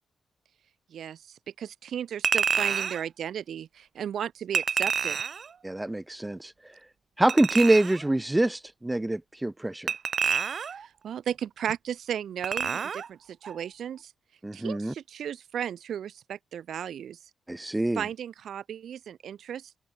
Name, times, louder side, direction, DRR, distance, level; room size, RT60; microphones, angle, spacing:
voice 1, 0.9-5.2 10.7-14.1 14.5-17.2 17.9-19.8, right 9 dB, 75° right, 2.5 m, -35 dB
Chink clink, 2.2-3.0 4.5-5.5 7.3-8.0 9.9-10.9 12.4-13.1 13.4-13.6, right 6 dB, 55° right, 0.9 m, -28 dB
voice 2, 5.6-6.5 7.2-9.9 14.4-14.9 17.5-18.0, right 1 dB, 10° right, 0.7 m, -25 dB
open air
cardioid pair, 110°, 0 cm